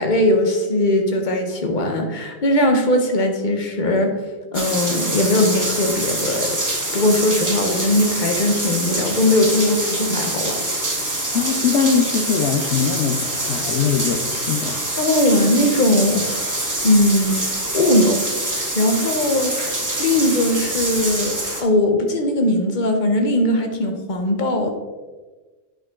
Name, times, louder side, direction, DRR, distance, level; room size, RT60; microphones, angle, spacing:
voice 1, 0.0-4.1 4.5-6.5 6.9-10.6 15.0-16.4 16.8-17.4 17.7-18.2 18.5-19.5 20.0-24.7, left 1 dB, 40° left, 4 dB, 1.2 m, -19 dB
sound 1, 4.5-21.6, right 1 dB, 15° right, 1.3 m, -25 dB
voice 2, 11.3-14.8, left 6 dB, 65° left, 3 dB, 0.9 m, -21 dB
8.9 x 6.7 x 3.8 m, 1.3 s
omnidirectional pair, 1.3 m